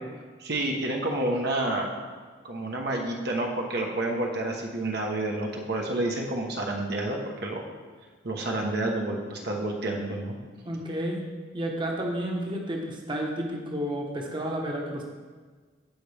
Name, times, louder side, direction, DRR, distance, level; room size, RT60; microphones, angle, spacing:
voice 1, 0.4-1.9 2.4-7.6 8.2-10.4, right 1 dB, 60° right, 0 dB, 1.1 m, -29 dB
voice 2, 10.6-11.2 11.5-15.0, right 1 dB, 25° right, 0 dB, 1.1 m, -31 dB
15.5 x 5.2 x 3.4 m, 1.4 s
head